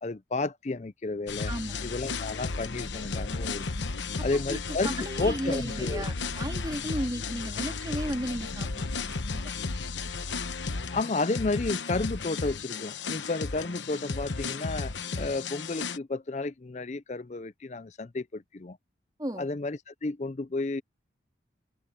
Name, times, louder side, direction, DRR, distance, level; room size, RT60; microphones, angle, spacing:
voice 1, 0.0-1.5 1.8-3.7 4.2-6.0 10.9-18.8 19.4-20.8, left 3 dB, 40° left, 0.5 m, -32 dB
sound 1, 1.3-16.0, left 4 dB, 85° left, 1.1 m, -34 dB
voice 2, 1.5-1.8 4.3-4.6 4.8-8.9 9.3-9.5 19.2-19.5, equal, 20° right, 2.9 m, -34 dB
open air
head